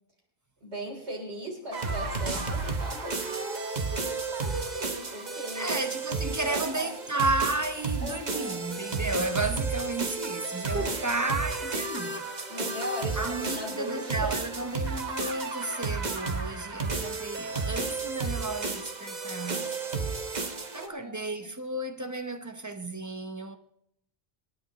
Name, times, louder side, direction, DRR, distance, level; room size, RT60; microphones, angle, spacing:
voice 1, 0.6-5.8 6.4-6.9 8.0-8.6 10.5-11.0 12.5-14.4 20.7-21.1 21.4-21.5, equal, 85° right, 3.8 m, -38 dB
sound 1, 1.7-20.9, right 4 dB, 40° right, 1.2 m, -32 dB
voice 2, 5.5-12.5 13.2-19.7 20.7-23.6, right 2 dB, 20° right, 0.8 m, -33 dB
26.5 x 9.8 x 3.0 m
omnidirectional pair, 1.1 m